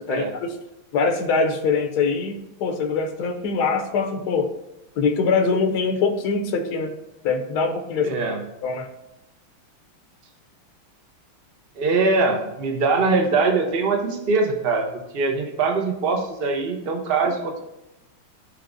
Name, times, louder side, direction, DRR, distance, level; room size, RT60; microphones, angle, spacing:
voice 1, 0.1-0.5 0.9-4.5 5.0-6.9 7.2-8.2 8.6-8.9, left 4 dB, 65° left, 4 dB, 1.1 m, -23 dB
voice 2, 8.0-8.4 11.8-14.9 15.1-17.6, right 4 dB, 65° right, 3 dB, 0.5 m, -22 dB
13.0 x 4.7 x 2.6 m, 0.92 s
omnidirectional pair, 2.4 m